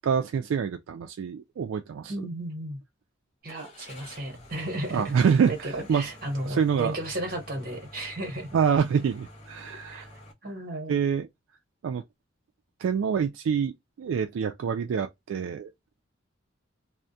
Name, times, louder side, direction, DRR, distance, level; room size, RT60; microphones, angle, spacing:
voice 1, 0.0-2.1 4.9-6.1 6.5-6.9 8.5-10.1 10.9-11.3 11.8-12.0 12.8-13.7 14.0-15.7, right 7 dB, 80° right, 0.3 m, -26 dB
voice 2, 2.1-2.8 3.4-5.1 5.4-8.6 9.9-10.0 10.4-11.0, right 1 dB, 45° right, 1.0 m, -34 dB
Car / Engine starting, 3.5-10.3, left 1 dB, 35° left, 0.7 m, -48 dB
2.3 x 2.1 x 2.6 m
head